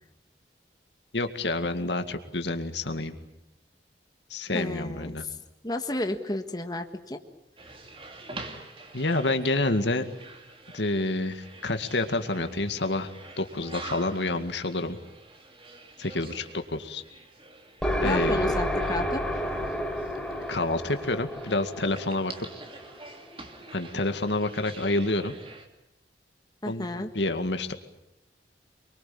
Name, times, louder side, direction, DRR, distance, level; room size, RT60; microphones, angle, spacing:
voice 1, 1.1-3.2 4.3-5.3 8.9-10.1 10.7-13.1 13.4-15.0 16.0-17.0 18.0-18.5 20.5-22.3 23.7-25.3 26.7-27.7, left 2 dB, 80° left, 7 dB, 2.1 m, -28 dB
voice 2, 4.5-5.3 5.6-7.2 18.0-19.2 26.6-27.1, left 1 dB, 20° left, 6 dB, 1.5 m, -32 dB
sound 1, 7.6-25.7, right 3 dB, 30° right, 2.8 m, -46 dB
sound 2, 17.8-23.4, equal, 5° left, 3.8 m, -30 dB
26.0 x 23.0 x 8.7 m, 0.86 s
head